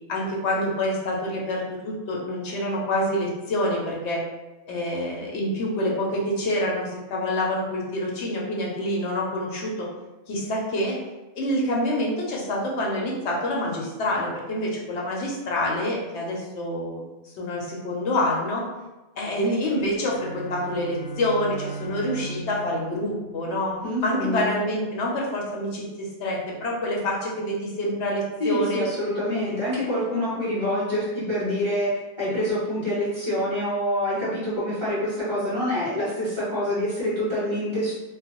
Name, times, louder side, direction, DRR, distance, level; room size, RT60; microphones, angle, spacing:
voice 1, 0.1-4.2 4.7-9.9 10.3-10.9 11.4-17.0 17.4-18.6 19.2-23.7 24.0-28.8 29.3-29.5, left 1 dB, 75° left, -2 dB, 0.9 m, -27 dB
Bowed string instrument, 19.9-24.0, right 3 dB, 30° left, 0.6 m, -38 dB
voice 2, 23.8-24.6 28.4-31.9 32.2-37.9, left 1 dB, 25° right, -11 dB, 1.6 m, -26 dB
3.1 x 2.1 x 2.9 m, 1.1 s
omnidirectional pair, 1.2 m